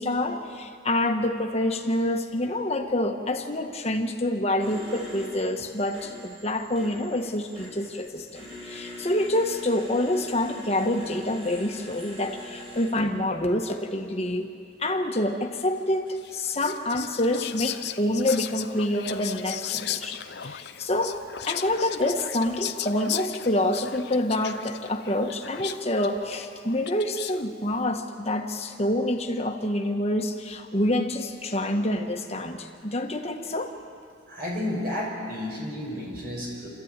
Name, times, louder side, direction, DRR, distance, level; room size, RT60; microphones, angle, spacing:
voice 1, 0.0-14.5 14.8-21.2 21.5-33.7, left 1 dB, 30° left, 4 dB, 1.4 m, -27 dB
sound 1, 4.6-12.9, left 1 dB, 30° right, 5.9 m, -42 dB
Whispering, 16.2-27.5, left 10 dB, 55° left, 0.7 m, -36 dB
voice 2, 34.3-36.7, left 1 dB, 50° right, -2 dB, 5.8 m, -31 dB
27.5 x 13.5 x 9.0 m, 2.4 s
head